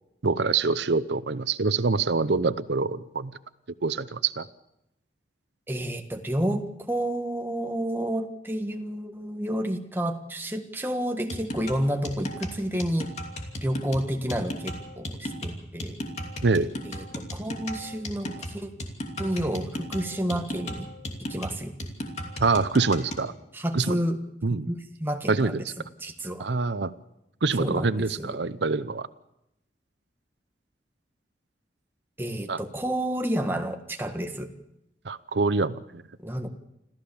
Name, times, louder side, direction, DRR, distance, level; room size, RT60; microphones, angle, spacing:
voice 1, 0.2-3.3 3.8-4.5 16.4-16.7 22.4-23.3 23.7-24.0 24.4-24.7 25.3-25.7 26.4-26.9 27.4-29.1 32.5-32.6 35.0-36.0, right 4 dB, 85° right, 14 dB, 0.7 m, -25 dB
voice 2, 5.7-13.1 13.6-16.0 16.8-18.7 19.2-20.9 21.2-21.7 23.5-24.2 24.5-25.6 26.0-26.4 27.6-28.4 32.2-34.5 36.2-36.5, right 1 dB, 10° right, 5 dB, 1.6 m, -30 dB
sound 1, 11.3-23.3, equal, 40° left, 2.8 m, -35 dB
26.5 x 15.0 x 7.1 m, 0.85 s
head